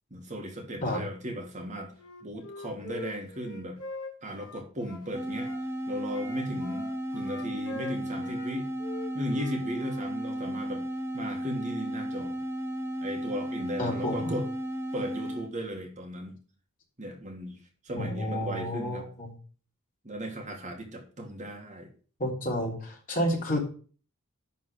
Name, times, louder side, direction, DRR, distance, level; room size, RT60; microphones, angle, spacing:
voice 1, 0.1-1.9 2.2-3.8 4.2-5.5 5.9-8.7 9.1-10.8 11.1-12.4 13.0-14.5 14.9-16.3 17.0-17.6 17.8-19.1 20.0-21.9, equal, 35° right, 2 dB, 1.7 m, -36 dB
Wind instrument woodwind instrument, 1.9-5.6 6.1-8.5 8.8-10.1, left 2 dB, 75° left, 3.9 m, -43 dB
Flute C Hi Long, 5.1-15.5, equal, 10° right, 0.6 m, -34 dB
voice 2, 13.8-14.3 18.0-19.3 22.2-23.6, equal, 40° left, -2 dB, 3.1 m, -30 dB
11.0 x 3.8 x 6.3 m, 0.41 s
head